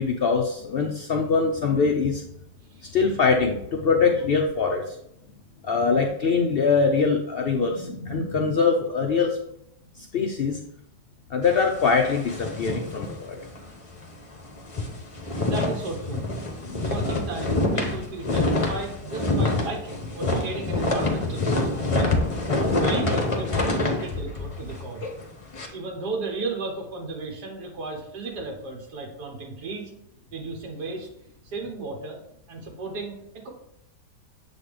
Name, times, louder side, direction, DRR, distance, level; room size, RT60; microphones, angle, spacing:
voice 1, 0.0-2.2 2.8-5.0 5.6-9.4 10.0-10.6 11.3-13.4 16.6-16.8, left 5 dB, 85° left, 1 dB, 0.5 m, -23 dB
sound 1, 11.4-13.7 14.0-14.2 14.5-25.7, left 2 dB, 30° left, 0.6 m, -26 dB
voice 2, 15.4-22.2 22.8-25.1 25.7-29.9 30.3-31.1 31.4-32.2 32.5-33.5, right 3 dB, 80° right, 1 dB, 1.7 m, -34 dB
7.1 x 4.0 x 3.3 m, 0.74 s
omnidirectional pair, 1.7 m